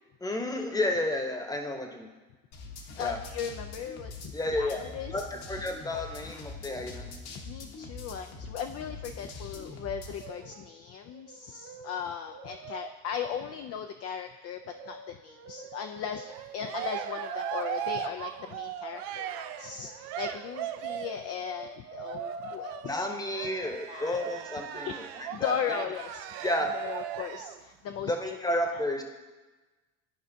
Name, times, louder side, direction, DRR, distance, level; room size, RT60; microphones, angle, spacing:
voice 1, 0.2-2.1 3.0-3.2 4.3-4.8 5.1-7.1 22.8-25.8 26.4-26.7 28.0-29.0, left 1 dB, 10° left, 4 dB, 1.0 m, -31 dB
sound 1, 2.5-10.3, left 3 dB, 60° left, 1.2 m, -43 dB
voice 2, 3.0-5.2 7.5-14.6 14.9-23.0 23.9-24.5 24.7-26.4 26.7-28.6, left 8 dB, 35° left, 6 dB, 0.4 m, -37 dB
Brass instrument, 10.1-10.8 11.1-13.6 14.6-17.8 19.2-23.0 24.0-24.4, right 4 dB, 30° right, 0.9 m, -44 dB
Cheering, 16.3-21.3 22.0-27.6, right 11 dB, 55° right, 0.6 m, -38 dB
11.5 x 5.0 x 2.7 m, 1.2 s
hypercardioid pair, 80°, 45 cm